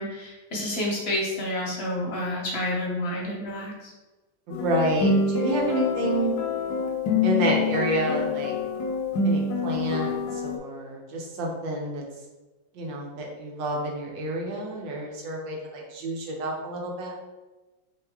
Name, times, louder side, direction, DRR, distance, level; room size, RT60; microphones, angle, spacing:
voice 1, 0.0-3.7, left 1 dB, 45° left, -2 dB, 0.9 m, -29 dB
sound 1, 4.5-10.6, left 4 dB, 70° left, 1.0 m, -26 dB
voice 2, 4.5-6.3 7.2-8.6 9.2-12.0 12.7-17.1, right 1 dB, 80° right, -1 dB, 1.5 m, -29 dB
3.5 x 3.4 x 3.5 m, 1.2 s
omnidirectional pair, 2.0 m